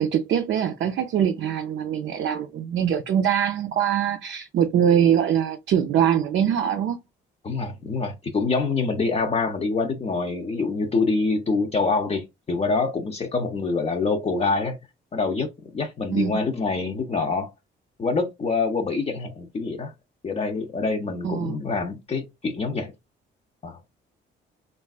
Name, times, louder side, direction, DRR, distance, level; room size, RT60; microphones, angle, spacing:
voice 1, 0.0-7.0 16.1-16.4 21.2-21.6, right 9 dB, 60° right, 0.4 m, -23 dB
voice 2, 7.4-14.8 15.1-17.5 18.0-19.9 20.2-22.9 23.6-23.8, left 4 dB, 30° left, 0.5 m, -25 dB
3.3 x 2.4 x 2.3 m
cardioid pair, 90°, 20 cm